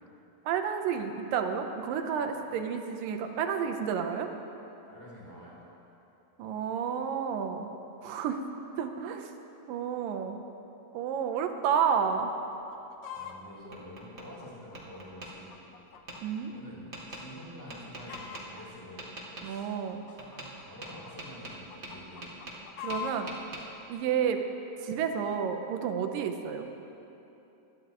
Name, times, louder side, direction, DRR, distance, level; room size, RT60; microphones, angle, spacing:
voice 1, 0.5-4.3 6.4-7.7 8.0-8.4 8.8-9.3 9.7-10.4 10.9-12.3 16.2-16.5 19.4-20.0 22.8-23.3 23.9-24.4 24.8-26.7, right 7 dB, 80° right, 5 dB, 2.4 m, -30 dB
voice 2, 4.8-5.6 13.1-15.5 16.3-19.1 19.4-19.7 20.1-22.3, left 1 dB, 5° left, -7 dB, 3.3 m, -48 dB
Chicken rooster, 12.5-13.4 14.0-16.2 16.6-16.7 17.2-17.5 17.7-18.6 19.3-21.1 21.5-23.3 24.0-24.1, left 9 dB, 75° left, 1.6 m, -43 dB
Tap, 13.2-14.3 14.7-15.3 16.1-16.2 16.9-17.2 17.7-18.4 19.0-19.5 20.2-20.5 20.8-22.6 22.9-23.6, right 2 dB, 40° right, 0.7 m, -43 dB
21.0 x 13.0 x 3.0 m, 3.0 s
omnidirectional pair, 4.0 m